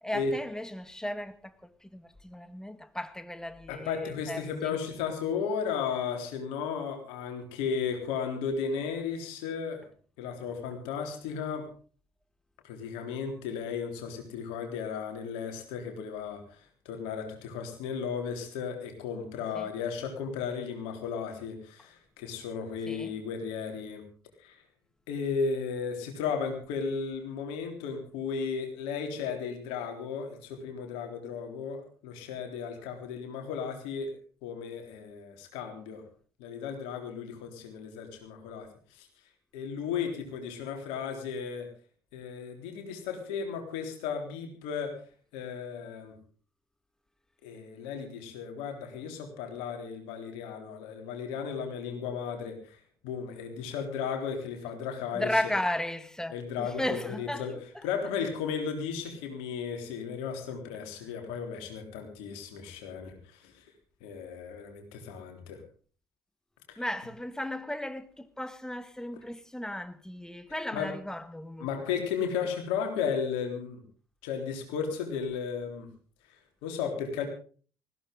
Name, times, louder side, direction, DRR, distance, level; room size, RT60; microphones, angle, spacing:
voice 1, 0.0-4.8 19.5-19.7 22.9-23.1 55.1-57.9 66.8-71.7, left 1 dB, 5° left, 1.8 m, -35 dB
voice 2, 3.7-9.8 10.2-11.7 12.6-16.6 16.9-24.0 24.4-24.6 25.1-34.2 34.4-36.0 36.4-39.1 39.5-41.7 42.1-45.0 45.3-46.1 47.4-52.8 53.0-55.5 56.3-57.5 57.8-63.6 64.0-65.6 66.7-66.8 70.7-70.9 71.6-73.8 74.2-75.9 76.6-77.3, left 6 dB, 70° left, 3.6 m, -35 dB
20.0 x 15.5 x 3.8 m
hypercardioid pair, 50°, 10 cm